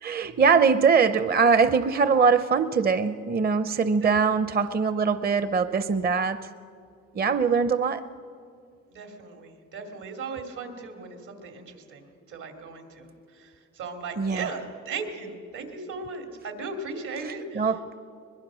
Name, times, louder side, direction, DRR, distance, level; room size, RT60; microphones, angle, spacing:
voice 1, 0.0-6.5 7.1-8.0 14.2-14.5 17.3-17.8, right 5 dB, 30° right, 12 dB, 0.6 m, -22 dB
voice 2, 8.9-13.1 13.3-17.7, right 4 dB, 80° right, 4 dB, 2.9 m, -37 dB
22.5 x 21.5 x 6.3 m, 2.4 s
cardioid pair, 90°, 30 cm